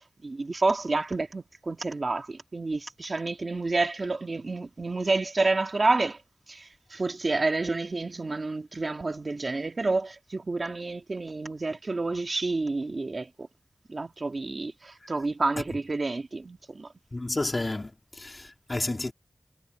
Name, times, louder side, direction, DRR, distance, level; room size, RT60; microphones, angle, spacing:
voice 1, 0.2-6.2 6.5-13.5 13.9-16.9, right 3 dB, 60° right, 1.9 m, -29 dB
voice 2, 17.1-19.1, left 2 dB, 40° left, 2.8 m, -31 dB
wide cardioid pair, 75°, 0 cm